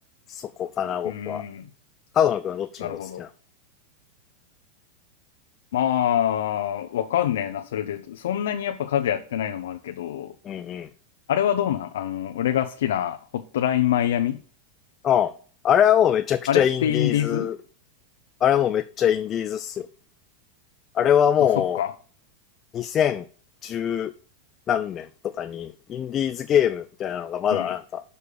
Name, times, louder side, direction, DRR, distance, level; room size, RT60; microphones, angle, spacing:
voice 1, 0.3-1.4 2.1-3.3 10.4-10.9 15.0-15.3 15.6-17.6 18.4-19.9 20.9-21.8 22.7-23.3 23.6-24.1 24.7-28.0, left 9 dB, 25° left, 0.3 m, -23 dB
voice 2, 1.0-1.7 2.8-3.3 5.7-10.3 11.3-14.4 16.5-17.5 21.6-21.9 27.5-27.7, left 10 dB, 85° left, 0.6 m, -25 dB
6.7 x 5.4 x 6.5 m
supercardioid pair, 160°, 0 cm